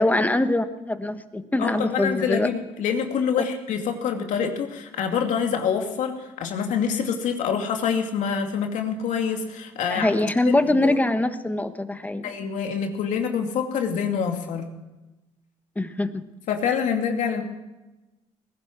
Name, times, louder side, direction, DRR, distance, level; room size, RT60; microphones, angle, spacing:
voice 1, 0.0-2.5 9.9-12.3 15.8-16.2, left 2 dB, 10° left, 10 dB, 1.2 m, -23 dB
voice 2, 1.6-10.2 10.5-10.9 12.2-14.7 16.5-17.4, left 7 dB, 70° left, 4 dB, 2.5 m, -26 dB
20.0 x 11.0 x 6.1 m, 1.0 s
cardioid pair, 80°, 13 cm